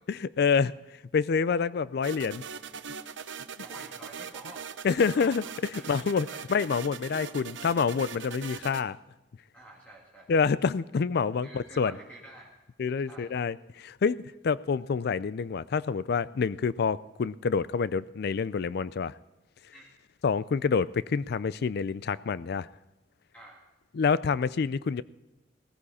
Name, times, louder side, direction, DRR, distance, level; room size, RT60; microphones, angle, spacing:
voice 1, 0.2-0.7 1.1-2.4 4.8-9.0 10.3-11.9 12.8-19.1 20.2-22.7 23.9-25.0, left 5 dB, 60° left, 0.4 m, -27 dB
sound 1, 2.0-8.8, right 6 dB, 85° right, 0.9 m, -41 dB
voice 2, 3.6-4.6 5.1-6.4 7.3-7.5 9.5-10.3 11.4-12.5 13.0-13.4 19.7-19.9 23.3-23.6, right 1 dB, 10° left, 2.4 m, -49 dB
17.0 x 14.5 x 4.2 m
head